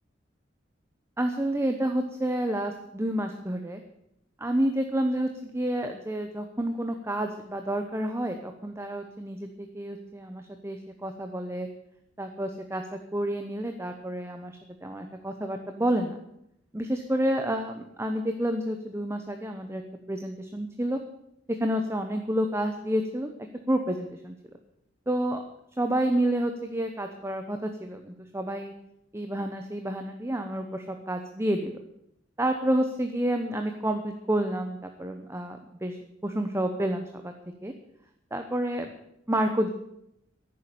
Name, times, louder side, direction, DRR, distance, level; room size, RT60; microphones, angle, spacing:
voice 1, 1.2-3.8 4.4-11.7 12.2-16.2 16.7-19.8 20.1-21.0 21.5-23.3 23.7-24.3 25.1-25.4 25.8-28.7 29.1-31.8 32.4-36.0 36.2-37.3 37.6-37.7 38.3-38.9 39.3-39.7, right 1 dB, 15° right, 5 dB, 0.9 m, -29 dB
11.0 x 9.4 x 8.5 m, 0.79 s
head